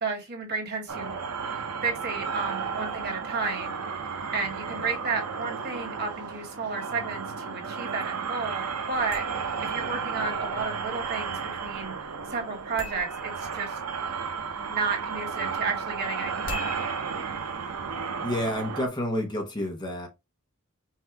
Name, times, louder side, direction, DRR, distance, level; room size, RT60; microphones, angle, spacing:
voice 1, 0.0-1.2 1.5-3.8 4.3-13.8 14.6-16.7, right 4 dB, 45° right, 2.0 m, -32 dB
sound 1, 0.9-18.9, right 5 dB, 90° right, 0.7 m, -33 dB
sound 2, 8.9-18.7, left 3 dB, 60° left, 1.8 m, -46 dB
voice 2, 18.2-20.1, left 1 dB, 20° left, 1.0 m, -29 dB
5.7 x 2.7 x 3.4 m
head